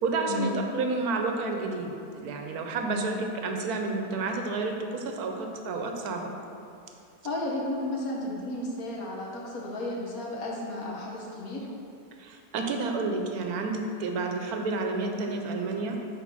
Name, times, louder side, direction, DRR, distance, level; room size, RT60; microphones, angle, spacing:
voice 1, 0.0-6.3 12.2-16.0, right 3 dB, 70° right, 3 dB, 1.2 m, -30 dB
voice 2, 2.8-3.2 7.2-11.7, left 1 dB, 65° left, -2 dB, 1.3 m, -33 dB
7.5 x 3.8 x 5.4 m, 2.7 s
omnidirectional pair, 1.7 m